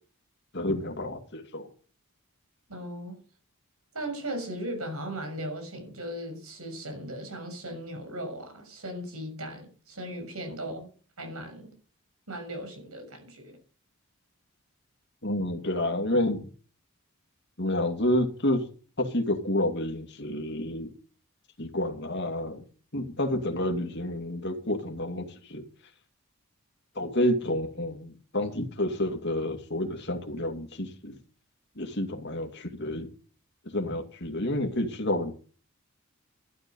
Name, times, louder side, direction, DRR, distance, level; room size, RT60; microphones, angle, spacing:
voice 1, 0.5-1.7 15.2-16.4 17.6-18.6 19.0-20.9 21.6-22.6 22.9-25.6 27.0-31.2 31.8-33.1 33.6-35.3, left 1 dB, 50° left, 2.4 m, -29 dB
voice 2, 2.7-3.2 3.9-10.9 11.2-11.7 12.3-13.6, right 1 dB, 85° right, 6.5 m, -37 dB
12.5 x 12.0 x 5.4 m
head